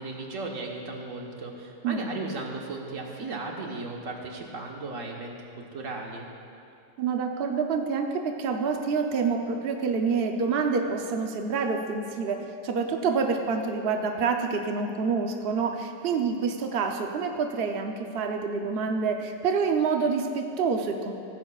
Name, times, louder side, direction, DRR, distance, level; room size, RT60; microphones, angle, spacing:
voice 1, 0.0-6.3, right 3 dB, 45° right, 0 dB, 1.5 m, -36 dB
voice 2, 7.0-21.1, right 5 dB, 70° right, 3 dB, 0.5 m, -27 dB
16.0 x 15.0 x 2.4 m, 2.5 s
omnidirectional pair, 2.0 m